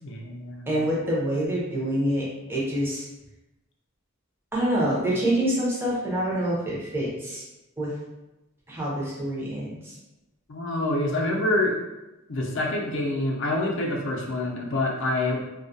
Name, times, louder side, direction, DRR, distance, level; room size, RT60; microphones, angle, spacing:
voice 1, 0.0-0.9 10.5-11.7 12.3-15.4, left 2 dB, 65° left, 0 dB, 0.5 m, -26 dB
voice 2, 0.7-3.0 4.5-7.4 7.8-7.9 8.7-9.9, right 1 dB, 10° right, -6 dB, 0.6 m, -26 dB
2.3 x 2.1 x 2.5 m, 1.0 s
head